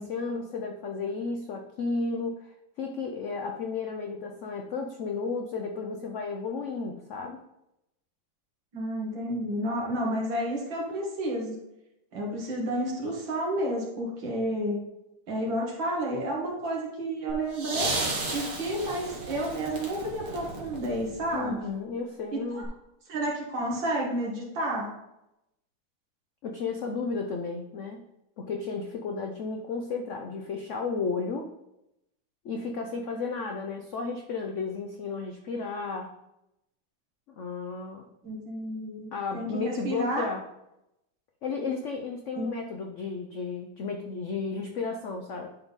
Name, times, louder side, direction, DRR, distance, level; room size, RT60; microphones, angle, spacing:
voice 1, 0.0-7.4 15.5-15.6 21.3-22.7 26.4-28.0 28.4-31.5 32.4-36.1 37.4-38.0 39.1-40.4 41.4-45.6, left 4 dB, 80° left, 3 dB, 0.6 m, -33 dB
voice 2, 8.7-11.6 12.1-14.8 15.3-18.0 18.3-21.6 22.3-22.6 23.1-24.9 38.2-40.3 42.4-42.5, right 1 dB, 75° right, -3 dB, 2.5 m, -31 dB
sound 1, 17.3-21.5 22.6-22.7, right 2 dB, 50° right, 1.6 m, -34 dB
10.5 x 3.7 x 4.0 m, 0.87 s
omnidirectional pair, 2.1 m